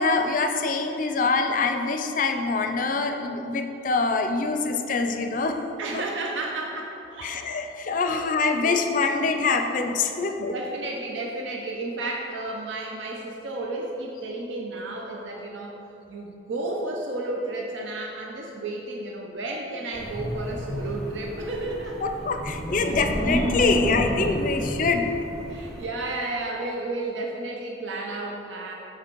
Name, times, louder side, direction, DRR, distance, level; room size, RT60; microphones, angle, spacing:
voice 1, 0.0-5.6 7.2-10.5 22.0-25.1, left 4 dB, 45° left, 6 dB, 0.4 m, -25 dB
voice 2, 5.8-7.7 8.1-8.3 8.6-8.8 10.4-15.8 16.1-22.1 25.5-28.7, right 2 dB, 80° right, 0 dB, 0.6 m, -32 dB
Wind, 19.9-25.8, equal, ahead, 0.6 m, -30 dB
7.6 x 4.3 x 4.5 m, 2.9 s
head